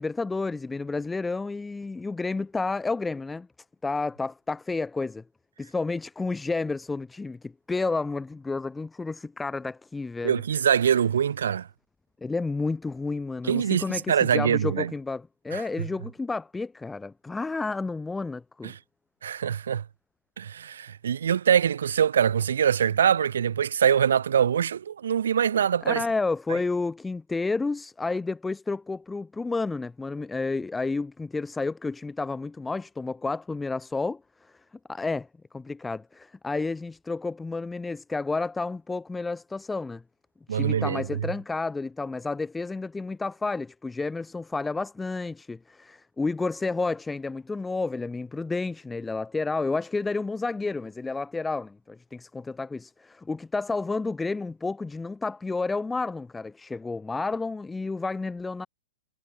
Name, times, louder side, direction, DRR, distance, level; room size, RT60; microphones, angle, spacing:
voice 1, 0.0-3.5 3.8-5.2 5.6-10.4 12.2-18.7 25.8-35.3 35.5-40.0 40.5-58.7, left 3 dB, 5° left, 1.1 m, -31 dB
voice 2, 10.2-11.7 13.5-14.9 15.5-15.6 18.6-18.8 19.2-19.8 20.4-26.0 40.5-41.3, right 8 dB, 80° right, 1.2 m, -24 dB
hypercardioid pair, 165°, 0 cm